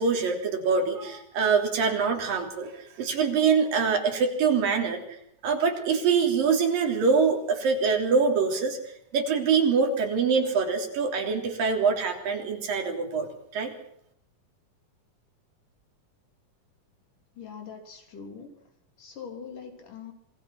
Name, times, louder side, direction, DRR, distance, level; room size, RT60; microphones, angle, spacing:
voice 1, 0.0-5.0 5.4-8.8 9.1-13.7, right 5 dB, 85° right, 3 dB, 5.1 m, -24 dB
voice 2, 17.4-18.5 19.0-20.1, left 6 dB, 70° left, 4 dB, 4.9 m, -42 dB
26.5 x 21.0 x 6.1 m, 0.72 s
omnidirectional pair, 3.9 m